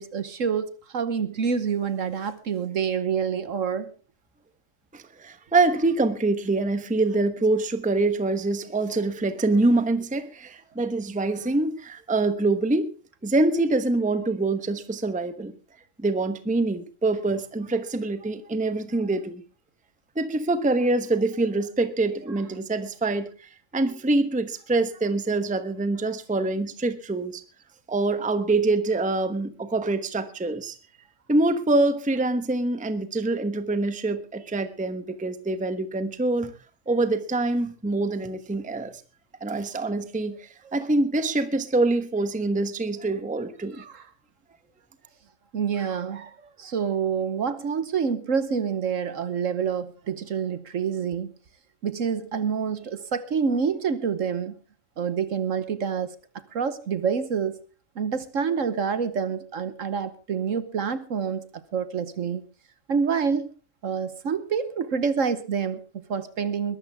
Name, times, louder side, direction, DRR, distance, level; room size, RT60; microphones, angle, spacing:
voice 1, 0.0-3.9 22.3-22.5 29.6-29.7 40.6-40.8 43.7-44.1 45.5-51.3 51.8-54.5 55.0-56.1 56.5-57.6 58.0-62.4 62.9-63.5 63.8-66.8, right 6 dB, 55° right, 13 dB, 1.3 m, -27 dB
voice 2, 4.9-12.9 13.2-15.5 16.0-19.4 20.2-23.3 23.7-27.4 27.9-30.7 31.3-36.5 36.9-38.9 39.4-40.4 40.7-43.8, right 2 dB, 5° right, 11 dB, 0.8 m, -25 dB
21.5 x 13.0 x 3.5 m, 0.35 s
omnidirectional pair, 1.7 m